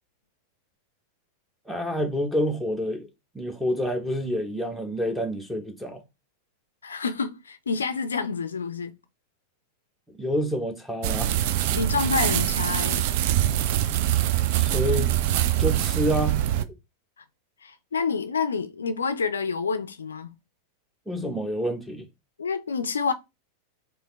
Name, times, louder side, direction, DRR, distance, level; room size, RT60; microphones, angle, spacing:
voice 1, 1.7-3.1 3.3-6.0 10.1-11.3 14.5-15.2 15.6-16.7 21.1-22.1, equal, ahead, 0.9 m, -28 dB
voice 2, 6.8-8.9 11.8-13.1 17.6-20.3 22.4-23.1, left 5 dB, 70° left, 0.4 m, -28 dB
sound 1, 11.0-16.6, right 12 dB, 50° right, 0.4 m, -24 dB
4.8 x 2.6 x 3.1 m
figure-of-eight pair, 90°, 0 cm